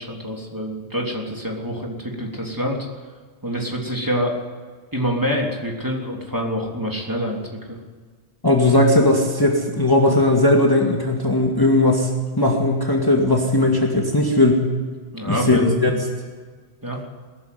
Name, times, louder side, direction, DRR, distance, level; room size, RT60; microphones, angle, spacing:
voice 1, 0.0-2.9 3.4-4.4 4.9-7.8 15.1-15.8 16.8-17.0, equal, 15° right, -1 dB, 3.3 m, -26 dB
voice 2, 8.4-12.1 12.4-14.7 15.2-15.9, left 2 dB, 20° left, 0 dB, 2.2 m, -18 dB
20.5 x 14.0 x 9.5 m, 1.5 s
omnidirectional pair, 1.1 m